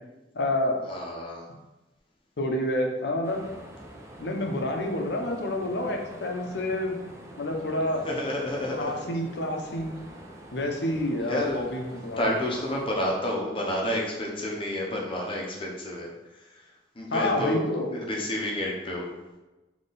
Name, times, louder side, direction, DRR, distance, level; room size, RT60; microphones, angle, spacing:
voice 1, 0.3-0.8 2.4-3.4 4.2-7.0 7.4-8.0 8.7-9.9 10.5-12.4 17.1-17.9, left 1 dB, 70° left, 2 dB, 0.7 m, -28 dB
voice 2, 0.9-1.5 8.0-9.0 11.3-11.6 12.2-16.7 16.9-17.6 17.9-19.1, left 1 dB, 30° left, -2 dB, 0.7 m, -30 dB
sound 1, 3.2-12.9, right 1 dB, 15° right, 0.4 m, -46 dB
4.0 x 3.0 x 3.9 m, 1.1 s
head